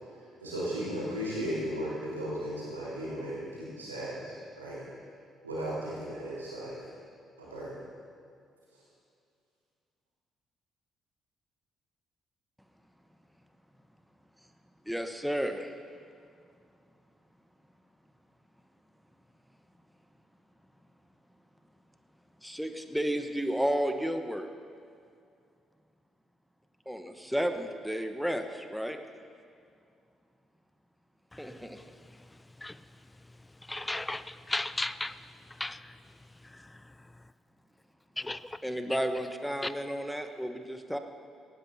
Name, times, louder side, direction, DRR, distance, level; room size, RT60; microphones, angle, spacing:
voice 1, 0.4-4.8 5.4-6.7 7.4-7.7, equal, 90° right, 4.1 m, -36 dB
voice 2, 14.9-15.7 22.4-24.5 26.9-29.0 31.4-31.8 38.6-41.0, equal, ahead, 1.1 m, -32 dB
voice 3, 33.7-35.2 35.6-35.9 36.5-36.7 38.2-38.6 39.6-39.7, left 2 dB, 15° left, 0.4 m, -35 dB
18.0 x 16.5 x 2.8 m
figure-of-eight pair, 45°, 0 cm